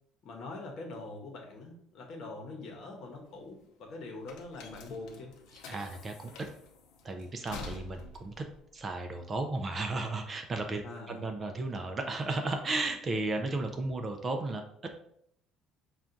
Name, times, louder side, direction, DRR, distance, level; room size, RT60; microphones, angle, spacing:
voice 1, 0.2-5.3 10.8-11.2, left 2 dB, 50° left, 1 dB, 0.9 m, -43 dB
sound 1, 3.0-9.8, left 3 dB, 80° left, 0.6 m, -48 dB
voice 2, 5.7-6.5 7.0-8.4 8.7-14.9, right 2 dB, 25° right, 5 dB, 0.4 m, -34 dB
5.5 x 2.3 x 2.5 m, 0.69 s
cardioid pair, 145°, 0 cm